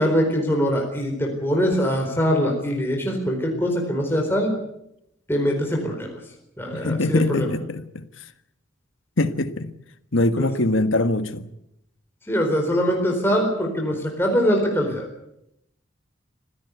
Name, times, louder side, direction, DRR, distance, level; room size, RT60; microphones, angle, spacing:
voice 1, 0.0-4.5 5.3-6.2 6.6-7.5 10.4-10.5 12.3-15.1, equal, 10° left, 4.4 m, -22 dB
voice 2, 6.7-8.3 9.2-9.7 10.1-11.5, left 2 dB, 75° left, 1.5 m, -23 dB
26.0 x 16.0 x 8.3 m
head